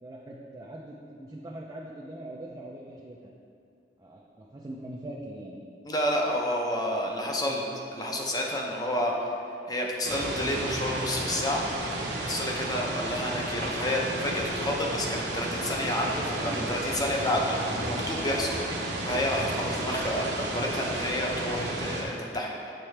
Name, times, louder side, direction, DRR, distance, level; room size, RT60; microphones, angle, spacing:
voice 1, 0.0-3.3 4.0-5.6 7.4-7.6 16.3-16.8, right 1 dB, 20° right, -3 dB, 0.4 m, -41 dB
voice 2, 5.8-9.3 9.7-11.6 12.2-22.7, left 1 dB, 20° left, -1 dB, 0.6 m, -30 dB
sound 1, 10.0-22.0, right 1 dB, 65° right, 0.9 m, -32 dB
7.5 x 4.4 x 3.2 m, 2.5 s
head